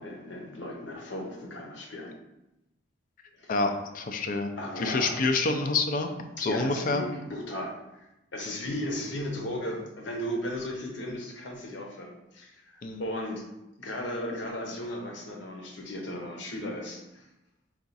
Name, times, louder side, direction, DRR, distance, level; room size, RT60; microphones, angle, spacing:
voice 1, 0.0-2.1 3.4-3.5 4.6-5.2 6.4-13.5 13.8-17.3, left 1 dB, 65° left, 1 dB, 0.8 m, -36 dB
voice 2, 3.5-4.5 4.8-6.1 6.4-7.0 12.8-13.0, left 3 dB, 45° left, 6 dB, 0.4 m, -27 dB
4.6 x 2.4 x 4.0 m, 0.94 s
head